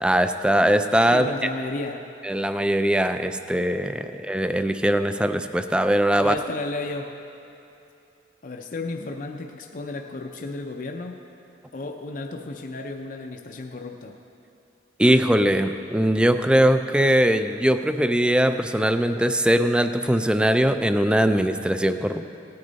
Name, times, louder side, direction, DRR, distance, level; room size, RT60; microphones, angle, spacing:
voice 1, 0.0-1.3 2.2-6.4 15.0-22.4, right 1 dB, 5° right, 9 dB, 0.3 m, -21 dB
voice 2, 1.1-2.1 6.1-7.2 8.4-11.2 11.7-14.2, left 2 dB, 50° left, 3 dB, 0.5 m, -33 dB
17.0 x 9.6 x 4.0 m, 2.8 s
head